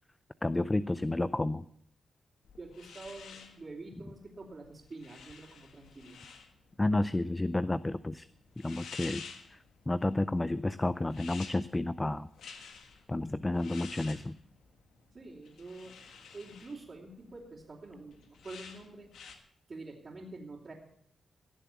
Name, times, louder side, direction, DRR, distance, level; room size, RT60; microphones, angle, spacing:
voice 1, 0.4-1.6 6.8-8.3 8.6-9.2 9.5-9.6 9.9-12.3 13.1-14.4, left 2 dB, 20° left, 15 dB, 0.5 m, -31 dB
sound 1, 2.4-19.4, left 5 dB, 80° left, 1.5 m, -51 dB
voice 2, 2.6-6.2 15.1-15.9 16.3-19.1 19.7-20.7, right 2 dB, 45° right, -5 dB, 3.4 m, -47 dB
17.5 x 6.9 x 7.1 m, 0.66 s
supercardioid pair, 50°, 0 cm